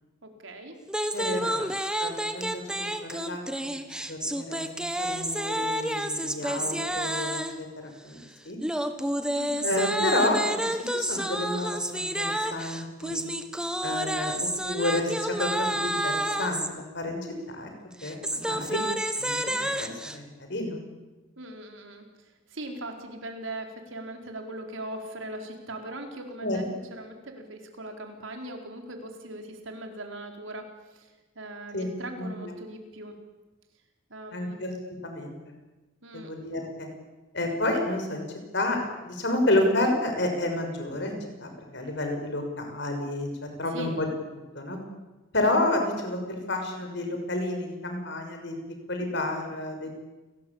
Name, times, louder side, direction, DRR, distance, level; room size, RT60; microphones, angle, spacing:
voice 1, 0.2-0.8 1.2-1.7 2.6-2.9 6.4-7.0 9.3-9.8 18.4-18.7 21.4-33.2 34.1-34.6 36.0-36.3 43.7-44.0, right 1 dB, 75° right, 4 dB, 4.5 m, -40 dB
sound 1, 0.9-7.6 8.6-16.7 17.9-20.2, right 1 dB, 5° right, 1.5 m, -30 dB
voice 2, 1.1-1.7 2.0-3.8 4.1-7.7 8.0-8.2 8.4-8.6 9.6-13.2 13.8-14.3 14.6-17.2 17.5-17.7 18.0-18.8 19.1-20.8 26.4-26.6 31.7-31.9 32.2-32.5 34.3-35.4 36.1-36.9 37.3-38.2 38.5-38.8 39.0-44.1 44.5-44.8 45.3-48.6 48.9-49.9, left 1 dB, 60° left, 4 dB, 6.3 m, -30 dB
29.5 x 19.5 x 8.8 m, 1.2 s
head